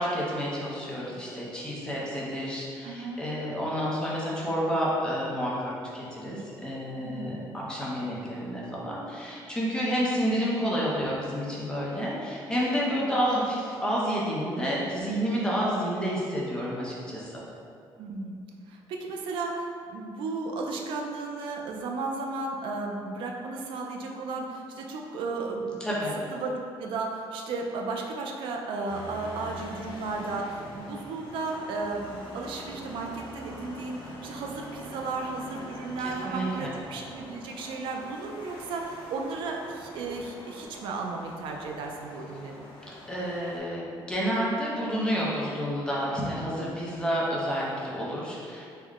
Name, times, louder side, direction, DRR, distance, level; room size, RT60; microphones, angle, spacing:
voice 1, 0.0-17.4 25.8-26.1 36.0-36.7 42.9-48.6, equal, 10° left, -5 dB, 0.6 m, -30 dB
voice 2, 2.8-3.2 7.0-7.5 9.8-10.0 18.0-18.4 18.7-25.8 26.3-42.6 46.6-46.7, right 3 dB, 70° right, 1 dB, 0.4 m, -34 dB
sound 1, 28.9-43.6, equal, 70° left, 1.0 m, -44 dB
3.5 x 2.1 x 3.4 m, 2.4 s
cardioid pair, 150°, 9 cm